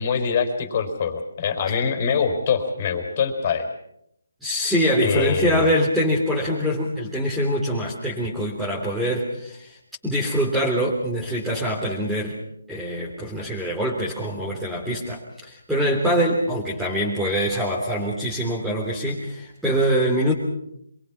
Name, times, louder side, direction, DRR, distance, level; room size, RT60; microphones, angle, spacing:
voice 1, 0.0-3.7 5.0-5.6, left 6 dB, 35° left, 7 dB, 4.5 m, -24 dB
voice 2, 4.4-9.8 10.0-12.4 12.7-20.3, equal, ahead, -6 dB, 3.4 m, -24 dB
27.0 x 23.0 x 6.0 m, 0.75 s
figure-of-eight pair, 155°, 0 cm